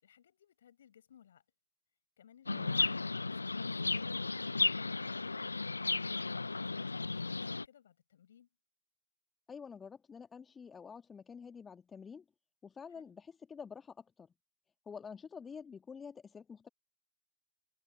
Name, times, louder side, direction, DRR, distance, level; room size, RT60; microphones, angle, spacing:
voice 1, 0.0-1.4 2.2-5.7 6.0-8.5 12.9-13.2, left 9 dB, 65° left, 6.2 m, -63 dB
Chirp tweet, 2.5-7.6, left 3 dB, 80° left, 0.4 m, -34 dB
voice 2, 2.5-2.8 9.5-12.2 12.6-14.3 14.9-16.7, left 6 dB, 20° left, 2.0 m, -48 dB
figure-of-eight pair, 90°, 0 cm